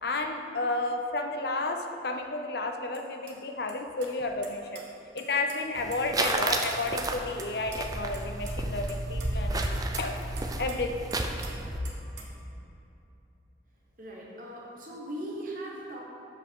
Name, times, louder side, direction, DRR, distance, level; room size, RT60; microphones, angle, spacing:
voice 1, 0.0-4.8 5.1-9.7 10.0-10.2 10.6-11.1, left 2 dB, 60° left, 5 dB, 0.6 m, -32 dB
sound 1, 2.9-3.0 3.3-3.4 3.7-3.8 4.0-4.8 5.2-5.6 5.9-7.5 7.7-7.8 8.1-8.5 8.9-10.8 11.1-11.5 11.8-12.4, right 5 dB, 70° right, 1.1 m, -45 dB
sound 2, 5.8-11.8, right 2 dB, 20° right, 0.4 m, -32 dB
voice 2, 14.0-16.0, right 1 dB, 45° right, -3 dB, 1.1 m, -39 dB
13.0 x 5.1 x 3.7 m, 2.8 s
head